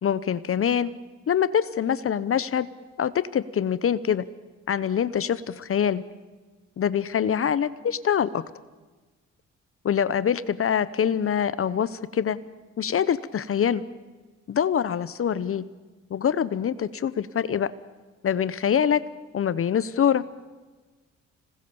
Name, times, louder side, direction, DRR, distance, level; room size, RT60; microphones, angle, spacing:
voice 1, 0.0-0.9 1.3-2.7 3.0-4.2 4.7-6.0 6.8-8.4 9.8-12.4 12.8-13.8 14.5-15.6 16.1-17.7 18.2-19.0 19.3-20.2, left 8 dB, 45° left, 16 dB, 0.9 m, -24 dB
26.5 x 20.0 x 7.1 m, 1.3 s
cardioid pair, 90°, 30 cm